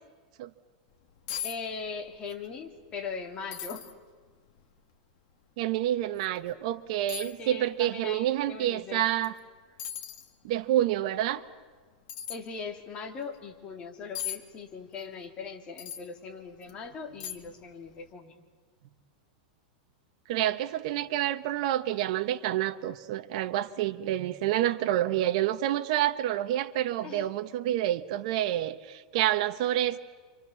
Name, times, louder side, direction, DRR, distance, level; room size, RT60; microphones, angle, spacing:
sound 1, 0.9-1.0 1.3-1.6 1.8-2.4 2.8-2.9 3.5-3.9 4.6-4.7 6.2-6.3 7.1-7.4 9.2-9.4 9.8-10.3 12.1-12.4 14.1-14.4 15.8-16.1 16.6-16.7 17.2-17.6 17.9-18.0, left 10 dB, 50° left, 2.2 m, -37 dB
voice 1, 1.4-3.8 7.2-9.1 12.3-18.3 27.0-27.3, left 5 dB, 25° left, 3 dB, 2.8 m, -40 dB
voice 2, 5.6-9.3 10.4-11.4 20.3-30.0, right 13 dB, 55° right, 10 dB, 1.3 m, -28 dB
28.5 x 25.5 x 7.2 m, 1.4 s
supercardioid pair, 160°, 4 cm